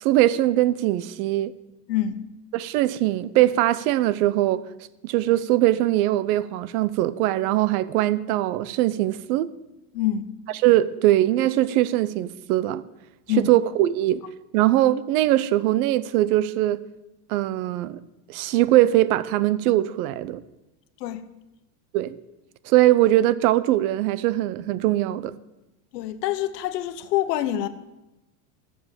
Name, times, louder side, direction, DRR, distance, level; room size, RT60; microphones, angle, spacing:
voice 1, 0.0-1.5 2.5-4.6 5.0-9.5 10.5-12.8 13.4-14.2 14.5-16.8 17.3-18.0 18.3-20.4 21.9-22.2 22.7-25.3, right 15 dB, 65° right, 0.8 m, -21 dB
voice 2, 1.9-2.2 9.9-10.3 13.3-13.5 21.0-21.2 25.9-27.7, left 11 dB, 85° left, 1.1 m, -25 dB
12.5 x 7.6 x 6.9 m
supercardioid pair, 140°, 47 cm